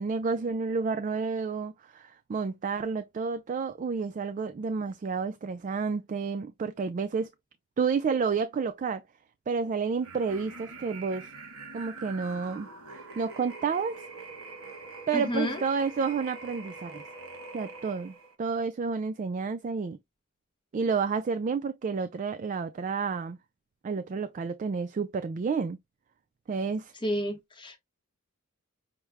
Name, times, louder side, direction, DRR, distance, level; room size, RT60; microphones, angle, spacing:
voice 1, 0.0-7.3 7.8-9.0 9.5-11.3 11.7-12.7 13.2-14.0 15.1-17.0 17.5-20.0 20.7-23.4 23.8-25.8 26.5-26.9, right 5 dB, 35° right, 0.3 m, -30 dB
sound 1, 10.0-18.3, right 3 dB, 70° right, 1.2 m, -44 dB
voice 2, 15.1-15.6 27.0-27.8, left 1 dB, 25° left, 0.8 m, -30 dB
5.8 x 2.1 x 3.3 m
head